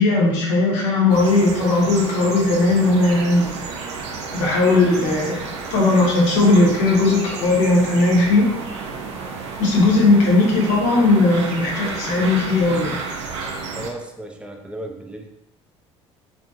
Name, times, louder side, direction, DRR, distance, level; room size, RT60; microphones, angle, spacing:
voice 1, 0.0-3.7 4.4-5.4 5.7-8.5 9.6-13.0, left 2 dB, 75° left, -2 dB, 0.7 m, -17 dB
sound 1, 1.1-13.9, right 4 dB, 80° right, 0.4 m, -31 dB
voice 2, 13.7-15.3, right 1 dB, 5° right, 2 dB, 0.4 m, -34 dB
2.8 x 2.5 x 2.3 m, 0.87 s
hypercardioid pair, 60°, 15 cm